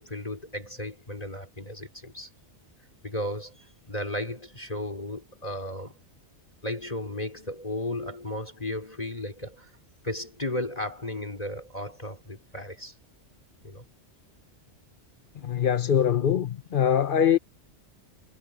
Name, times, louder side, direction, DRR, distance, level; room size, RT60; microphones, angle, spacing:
voice 1, 0.0-2.3 3.0-5.9 6.6-9.7 10.0-12.9 13.6-13.8, left 1 dB, 35° left, 3.4 m, -35 dB
voice 2, 15.4-17.4, left 9 dB, 50° left, 1.0 m, -23 dB
omnidirectional pair, 1.2 m